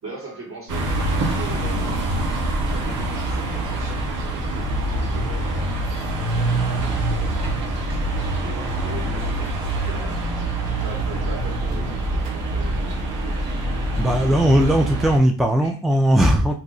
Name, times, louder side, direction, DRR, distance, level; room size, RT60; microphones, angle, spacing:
voice 1, 0.0-2.2 2.6-5.8 6.1-10.3 10.8-13.4 13.8-14.0 15.5-15.8, right 3 dB, 45° right, 1.7 m, -40 dB
sound 1, 0.7-15.2, right 1 dB, 85° right, 1.0 m, -25 dB
voice 2, 14.0-16.5, equal, ahead, 0.3 m, -18 dB
2.8 x 2.5 x 3.9 m
cardioid pair, 90°, 30 cm